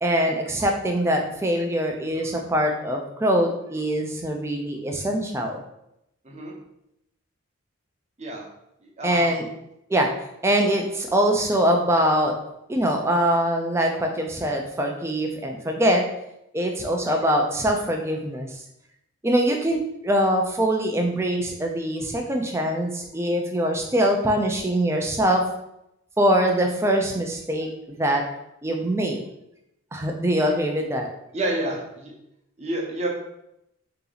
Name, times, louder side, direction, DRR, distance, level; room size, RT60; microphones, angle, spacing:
voice 1, 0.0-5.6 9.0-9.4 9.9-10.1 10.4-12.3 12.7-16.0 16.5-18.5 19.2-25.4 26.2-27.7 28.0-28.2 28.6-29.2 29.9-31.1, right 1 dB, 10° right, 2 dB, 0.4 m, -23 dB
voice 2, 8.8-9.4 10.5-10.6 31.3-32.1 32.6-33.1, right 1 dB, 30° right, -2 dB, 0.8 m, -29 dB
3.8 x 2.9 x 3.9 m, 0.82 s
head